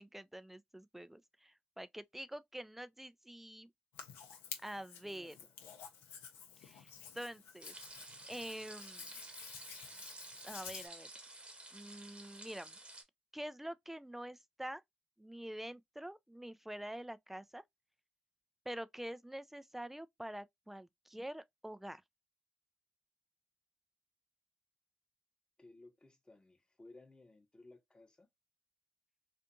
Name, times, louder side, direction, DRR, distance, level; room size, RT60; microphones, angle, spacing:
voice 1, 0.0-3.7 4.6-5.4 6.6-7.7 8.3-9.1 10.4-11.1 11.7-12.8 13.3-14.8 15.2-17.6 18.7-22.0, right 1 dB, 5° right, 0.3 m, -46 dB
Hands, 3.9-10.9, left 7 dB, 80° left, 0.5 m, -51 dB
voice 2, 5.0-5.5 25.6-28.3, left 2 dB, 20° left, 0.9 m, -59 dB
sound 1, 7.6-13.0, right 2 dB, 30° right, 1.0 m, -52 dB
2.5 x 2.4 x 2.6 m
hypercardioid pair, 45°, 4 cm